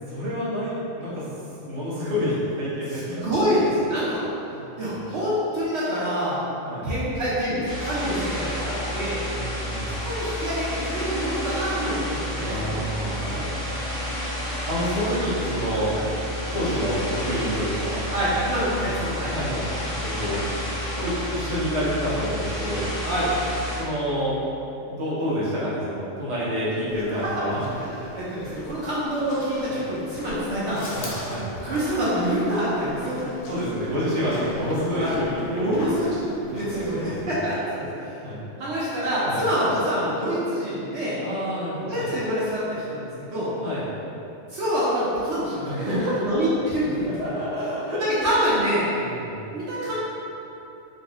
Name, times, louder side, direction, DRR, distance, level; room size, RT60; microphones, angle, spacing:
voice 1, 0.1-1.3 1.6-3.5 4.5-4.8 6.6-6.9 9.2-9.9 12.4-13.4 14.6-15.9 16.5-18.4 18.8-19.7 19.9-20.7 21.0-22.9 23.8-24.4 24.8-27.6 29.7-29.8 31.0-31.5 33.5-35.8 36.7-37.5 38.2-38.4 39.2-39.4 41.2-42.1 43.6-43.9 45.6-46.4 47.2-48.0 48.9-49.4, equal, 35° right, -9 dB, 0.8 m, -28 dB
voice 2, 3.1-4.2 4.8-6.4 6.8-9.2 10.0-12.8 13.2-14.0 15.9-16.1 18.1-19.3 20.3-20.4 23.0-23.3 26.4-26.5 27.5-31.0 31.6-33.3 34.9-36.2 36.5-38.2 38.6-41.2 41.9-43.5 44.5-45.9 46.2-47.1 48.0-48.9 49.2-49.9, equal, 65° right, -9 dB, 0.9 m, -26 dB
sound 1, 7.6-23.8, equal, 5° left, 0.6 m, -30 dB
sound 2, 26.9-37.3, left 1 dB, 60° left, 0.8 m, -42 dB
4.0 x 2.0 x 3.5 m, 2.9 s
omnidirectional pair, 1.3 m